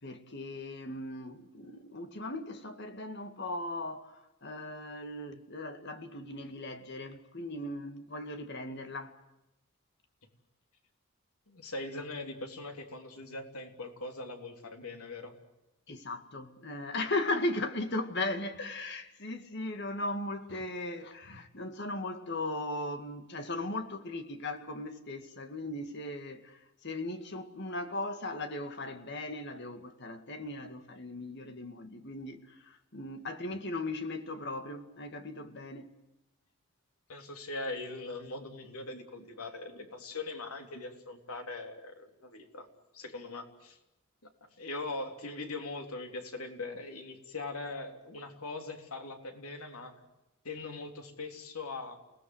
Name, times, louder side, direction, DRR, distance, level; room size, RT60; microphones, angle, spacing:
voice 1, 0.0-9.2 15.9-35.9, left 2 dB, 50° left, 2.1 m, -38 dB
voice 2, 11.5-15.3 37.1-42.7 42.9-43.8 44.6-49.9 50.4-52.0, left 2 dB, 85° left, 3.6 m, -41 dB
29.5 x 18.5 x 8.0 m
head